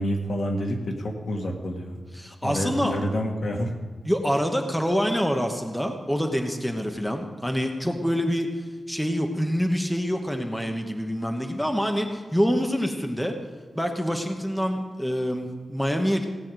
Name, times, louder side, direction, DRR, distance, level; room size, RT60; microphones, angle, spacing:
voice 1, 0.0-2.0 2.4-3.7, equal, 65° left, 2 dB, 1.9 m, -28 dB
voice 2, 2.2-3.0 4.0-8.5 8.9-13.3 13.7-16.2, equal, 5° left, 3 dB, 1.1 m, -26 dB
17.0 x 5.8 x 9.1 m, 1.4 s
wide cardioid pair, 120°, 0 cm